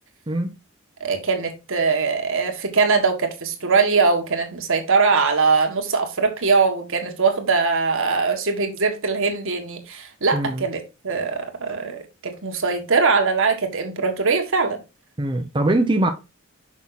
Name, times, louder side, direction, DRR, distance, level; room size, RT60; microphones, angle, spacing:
voice 1, 1.0-14.8, right 4 dB, 65° right, 1.7 m, -21 dB
voice 2, 10.3-10.6 15.2-16.1, right 1 dB, 20° right, 0.7 m, -21 dB
6.4 x 5.6 x 4.1 m
head